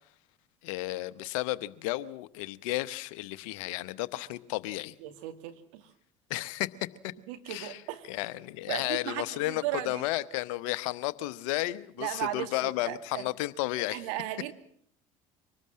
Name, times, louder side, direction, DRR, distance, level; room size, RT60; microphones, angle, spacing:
voice 1, 0.6-4.9 6.3-6.9 7.5-7.8 8.1-14.0, left 17 dB, 70° left, 1.0 m, -33 dB
voice 2, 5.0-5.9 7.3-8.1 8.6-10.0 12.0-13.3 13.9-14.5, right 14 dB, 75° right, 2.4 m, -36 dB
24.5 x 19.5 x 7.6 m
hypercardioid pair, 70°, 17 cm